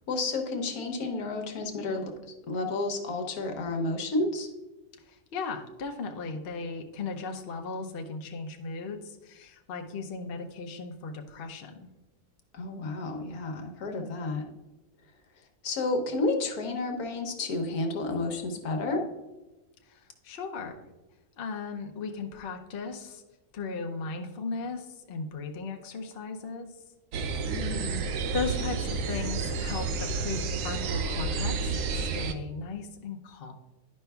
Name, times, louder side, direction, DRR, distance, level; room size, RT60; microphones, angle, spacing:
voice 1, 0.1-2.1 2.5-4.5 12.5-14.5 15.6-19.1 27.4-28.1 28.8-29.0, left 2 dB, 75° left, 4 dB, 1.4 m, -31 dB
voice 2, 5.1-11.9 19.9-20.9 21.4-23.2 23.5-26.7 28.3-33.5, left 4 dB, 50° left, 3 dB, 0.7 m, -37 dB
sound 1, 27.1-32.3, right 4 dB, 65° right, 0.9 m, -30 dB
10.5 x 5.3 x 2.3 m, 1.1 s
omnidirectional pair, 1.6 m